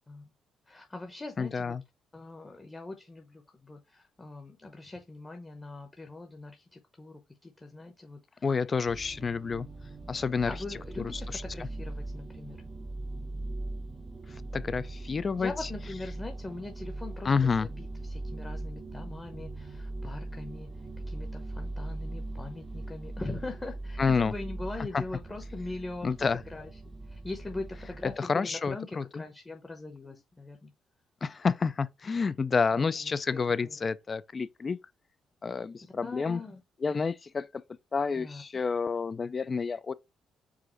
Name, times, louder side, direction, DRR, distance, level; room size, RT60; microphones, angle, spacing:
voice 1, 0.7-1.8 2.1-8.5 10.4-12.6 15.4-20.7 21.1-26.7 27.1-30.7 32.7-33.8 36.0-36.6 38.1-38.4, left 2 dB, 20° left, 0.8 m, -42 dB
voice 2, 1.4-1.8 8.4-9.7 10.1-10.5 11.0-11.4 14.3-15.7 17.2-17.7 24.0-24.3 24.9-25.0 26.0-26.4 28.2-29.2 31.2-34.8 35.4-36.4 36.8-37.5 37.9-39.9, left 5 dB, 35° left, 0.3 m, -29 dB
sound 1, 8.9-28.2, right 2 dB, 25° right, 0.6 m, -40 dB
4.8 x 2.5 x 4.3 m
cardioid pair, 90°, 0 cm